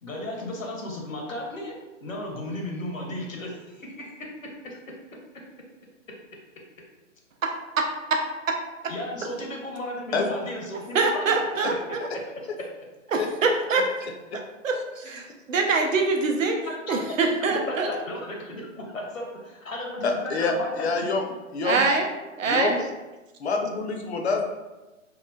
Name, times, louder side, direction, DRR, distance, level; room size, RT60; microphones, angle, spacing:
voice 1, 0.0-1.7 2.0-4.3 4.6-4.8 8.9-11.3 11.6-11.7 16.6-20.9, left 1 dB, 80° left, -1 dB, 0.8 m, -34 dB
voice 2, 7.4-7.8 8.1-8.2 8.5-8.6 10.9-11.7 13.1-13.9 14.6-17.9 21.6-22.1 22.4-22.8, right 3 dB, 75° right, 3 dB, 0.5 m, -24 dB
voice 3, 20.0-21.3 21.5-21.9 22.5-22.8 23.4-24.4, left 4 dB, 55° left, 3 dB, 0.5 m, -26 dB
2.9 x 2.1 x 2.2 m, 1.1 s
figure-of-eight pair, 120°, 39 cm